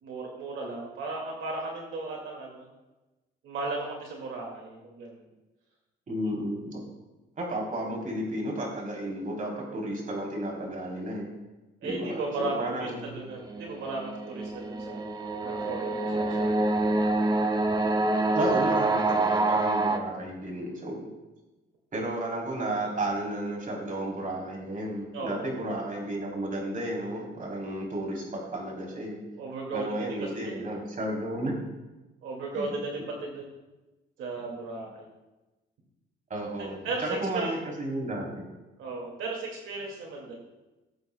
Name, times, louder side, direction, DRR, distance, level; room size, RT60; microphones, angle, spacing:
voice 1, 0.0-2.7 3.4-5.3 11.8-15.1 15.4-16.7 25.1-25.5 29.4-30.2 30.4-30.7 32.2-33.6 34.2-35.1 36.6-37.5 38.8-40.4, right 3 dB, 80° right, -1 dB, 2.1 m, -36 dB
voice 2, 6.1-6.8 7.4-11.3 11.8-13.2 18.3-21.1 21.9-29.2 29.7-31.5 32.5-32.7 36.3-38.4, right 1 dB, 40° right, -1 dB, 3.4 m, -33 dB
sound 1, 13.3-20.0, right 2 dB, 20° right, 0.9 m, -26 dB
18.0 x 8.1 x 2.2 m, 1.1 s
cardioid pair, 90°, 20 cm